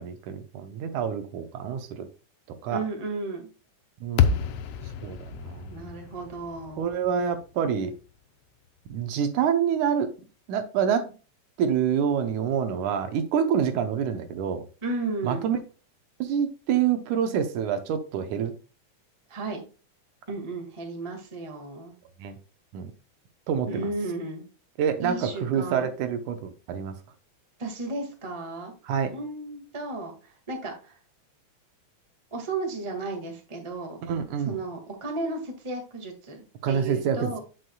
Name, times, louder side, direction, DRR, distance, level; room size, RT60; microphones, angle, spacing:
voice 1, 0.0-2.1 2.6-2.8 4.0-4.5 5.0-5.9 6.8-7.9 8.9-10.1 10.5-11.2 11.6-14.7 15.2-15.6 16.2-18.5 22.2-22.4 22.7-22.9 23.5-23.8 24.8-27.0 28.8-29.2 34.0-34.6 36.6-37.4, right 8 dB, 75° right, 2.3 m, -27 dB
voice 2, 2.7-3.5 5.7-6.8 14.8-15.4 19.3-19.6 20.3-21.9 23.7-24.5 25.0-25.9 27.6-28.7 29.1-30.9 32.3-34.0 34.4-37.4, right 3 dB, 15° right, 1.2 m, -34 dB
sound 1, 4.2-8.5, left 7 dB, 75° left, 1.6 m, -29 dB
8.3 x 7.7 x 2.3 m
omnidirectional pair, 3.6 m